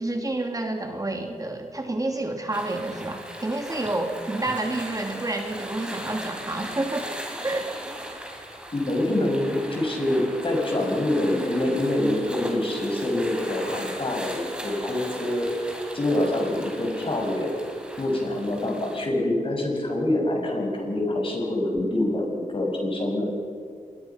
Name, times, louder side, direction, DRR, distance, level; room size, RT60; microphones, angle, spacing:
voice 1, 0.0-7.7, right 2 dB, 25° right, 3 dB, 2.9 m, -29 dB
sound 1, 2.5-19.1, equal, 10° right, 5.0 m, -38 dB
voice 2, 8.7-15.5 15.9-17.6 18.0-23.3, left 1 dB, 45° left, 1 dB, 6.2 m, -25 dB
27.0 x 21.5 x 5.9 m, 2.2 s
wide cardioid pair, 75°, 13 cm